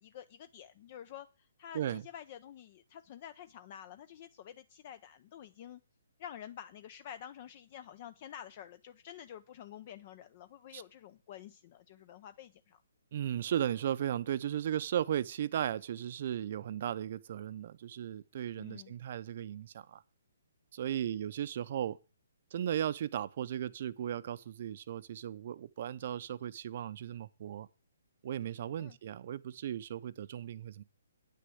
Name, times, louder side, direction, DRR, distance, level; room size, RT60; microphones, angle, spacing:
voice 1, 0.0-5.8 6.2-12.8 18.6-18.9 28.8-29.0, left 10 dB, 35° left, 0.6 m, -49 dB
voice 2, 13.1-20.0 20.7-22.0 22.5-27.7 28.2-30.8, right 10 dB, 45° right, 0.7 m, -36 dB
9.4 x 6.5 x 7.8 m
hypercardioid pair, 160°, 0 cm